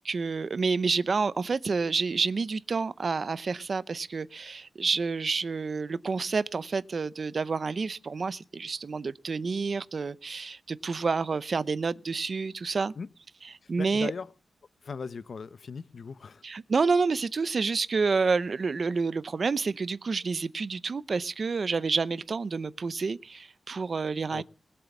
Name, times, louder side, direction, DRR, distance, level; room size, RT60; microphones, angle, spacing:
voice 1, 0.0-12.9 13.7-14.1 16.4-24.4, right 4 dB, 45° right, 0.6 m, -29 dB
voice 2, 13.6-14.3 14.8-16.4 24.3-24.4, left 5 dB, 55° left, 0.6 m, -38 dB
20.0 x 7.8 x 7.1 m
wide cardioid pair, 180°, 0 cm